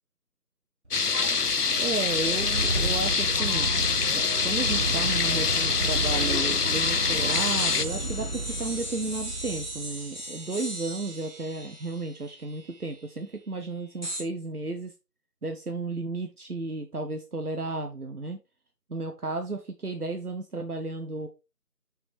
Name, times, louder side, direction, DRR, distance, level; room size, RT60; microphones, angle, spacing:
sound 1, 0.9-7.8, left 5 dB, 85° left, 0.9 m, -25 dB
sound 2, 1.0-10.3, right 2 dB, 50° right, 0.6 m, -33 dB
voice 1, 1.8-14.9 15.4-18.4 18.9-21.3, right 3 dB, 70° right, 5 dB, 1.3 m, -33 dB
sound 3, 7.3-13.0 14.0-14.2, right 1 dB, 30° left, 2.1 m, -37 dB
6.3 x 6.3 x 4.5 m, 0.28 s
figure-of-eight pair, 180°, 46 cm